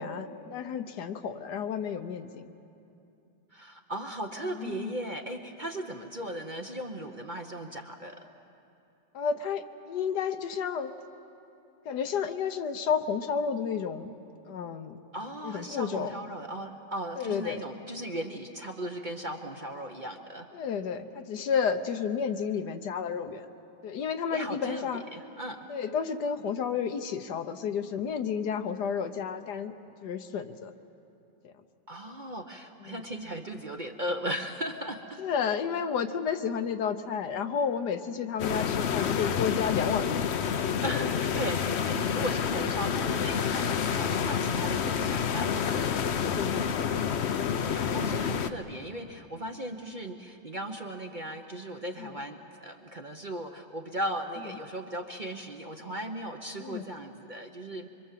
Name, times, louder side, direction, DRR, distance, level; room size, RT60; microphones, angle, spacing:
voice 1, 0.0-2.5 4.6-4.9 9.1-10.9 11.8-14.1 14.4-15.0 15.4-16.1 17.2-17.7 20.5-23.4 23.8-25.0 25.7-29.7 30.0-30.7 31.4-31.5 32.8-33.0 35.2-40.3 40.9-41.1 46.2-46.9 47.2-47.5 48.1-48.3 52.0-52.2 56.6-56.9, left 6 dB, 75° left, 8 dB, 1.5 m, -31 dB
voice 2, 3.5-8.3 15.1-20.5 24.3-25.7 31.9-35.2 40.8-46.0 47.6-57.9, right 1 dB, 35° right, 3 dB, 0.9 m, -37 dB
sound 1, 38.4-48.5, left 7 dB, 55° left, 0.8 m, -28 dB
25.5 x 24.5 x 7.5 m, 2.7 s
omnidirectional pair, 1.8 m